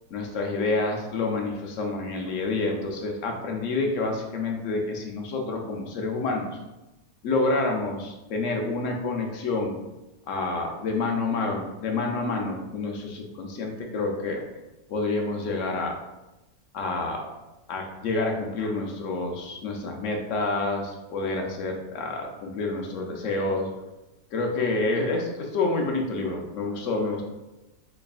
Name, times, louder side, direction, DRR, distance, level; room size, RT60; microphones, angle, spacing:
voice 1, 0.1-6.6 7.2-9.8 10.3-14.4 14.9-16.0 16.7-17.3 17.7-23.7 24.3-27.2, left 3 dB, 65° left, 2 dB, 0.9 m, -28 dB
4.0 x 3.3 x 2.3 m, 0.99 s
omnidirectional pair, 1.6 m